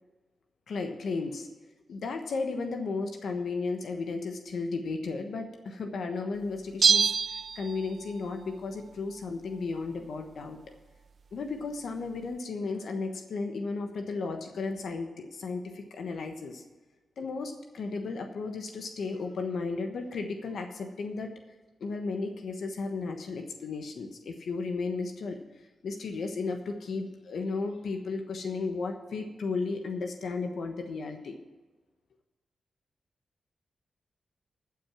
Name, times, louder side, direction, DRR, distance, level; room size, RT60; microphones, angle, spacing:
voice 1, 0.7-1.5 1.9-7.1 7.5-10.6 11.3-16.6 17.2-21.3 21.8-25.4 25.8-31.4, left 4 dB, 75° left, 5 dB, 1.1 m, -34 dB
Bell, 6.8-8.2 8.5-8.6, right 6 dB, 65° right, 0.4 m, -25 dB
12.5 x 6.0 x 7.3 m, 1.2 s
cardioid pair, 50°, 0 cm